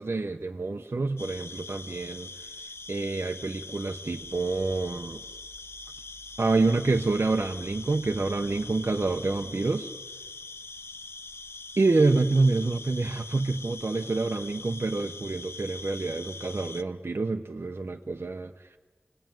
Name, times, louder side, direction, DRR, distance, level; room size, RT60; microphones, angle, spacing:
voice 1, 0.0-2.3 2.9-5.2 6.4-9.9 11.8-18.7, right 3 dB, 75° right, 3 dB, 1.0 m, -27 dB
sound 1, 1.2-16.8, left 3 dB, 85° left, 0.8 m, -43 dB
sound 2, 4.2-9.5, right 3 dB, ahead, 4.2 m, -56 dB
28.0 x 20.5 x 9.2 m, 1.3 s
wide cardioid pair, 55°, 4 cm